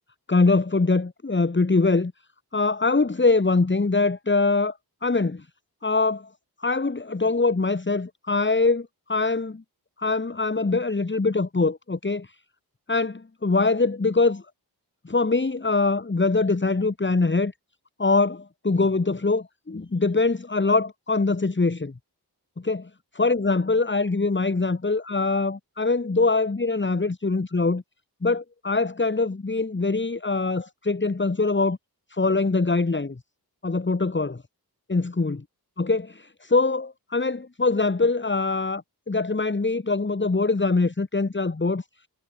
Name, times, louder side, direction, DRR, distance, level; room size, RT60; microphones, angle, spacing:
voice 1, 0.3-2.1 2.5-5.4 5.8-6.3 6.6-9.6 10.0-12.3 12.9-14.4 15.0-17.5 18.0-21.9 22.6-22.8 23.1-27.8 28.2-31.8 32.1-33.2 33.6-34.4 34.9-35.4 35.8-41.8, left 3 dB, 30° left, 3.2 m, -23 dB
wide cardioid pair, 115°, 39 cm